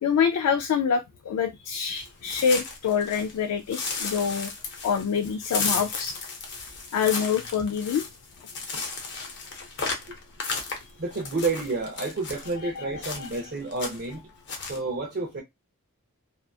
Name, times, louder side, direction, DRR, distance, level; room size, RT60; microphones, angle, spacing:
voice 1, 0.0-4.5 4.8-6.2 6.9-8.0 12.6-12.9 13.2-13.3, left 6 dB, 90° left, 0.3 m, -26 dB
sound 1, 2.0-3.4 3.7-12.5 13.0-13.5 13.7-14.1 14.5-14.8, left 4 dB, 55° left, 0.7 m, -34 dB
voice 2, 11.0-14.2 14.7-15.4, right 3 dB, 45° right, 0.6 m, -30 dB
2.7 x 2.2 x 2.3 m
head